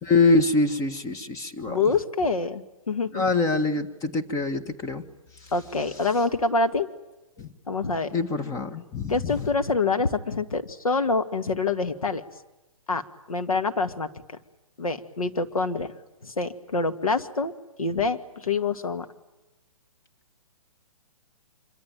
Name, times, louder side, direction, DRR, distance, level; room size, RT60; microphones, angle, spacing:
voice 1, 0.0-1.8 3.1-5.0 7.4-7.5 8.1-9.5, left 3 dB, 20° left, 6 dB, 1.7 m, -24 dB
voice 2, 1.7-3.2 5.5-6.9 7.7-8.1 9.1-12.2 12.9-13.0 13.3-14.1 14.8-15.9 16.2-17.5 17.8-19.1, left 3 dB, 80° left, 7 dB, 2.2 m, -26 dB
25.5 x 24.5 x 9.1 m, 1.0 s
figure-of-eight pair, 130°, 18 cm